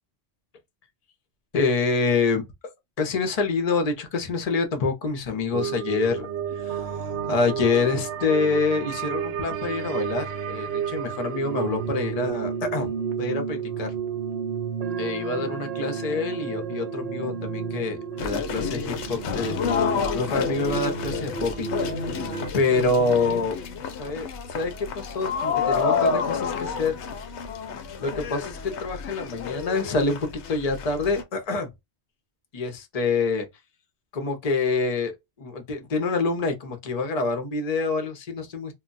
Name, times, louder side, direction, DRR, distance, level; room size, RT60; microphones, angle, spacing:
voice 1, 1.5-2.7 3.0-6.3 6.6-7.0 7.3-12.9 13.2-13.9 15.0-19.6 19.8-21.7 22.0-23.6 24.0-27.0 28.0-31.7 32.5-33.5 34.1-35.1 35.4-38.7, left 4 dB, 40° left, 0.7 m, -26 dB
sound 1, 5.5-22.5, right 7 dB, 65° right, 0.8 m, -31 dB
sound 2, 18.2-31.2, left 5 dB, 75° left, 0.9 m, -29 dB
2.3 x 2.2 x 3.8 m
omnidirectional pair, 1.2 m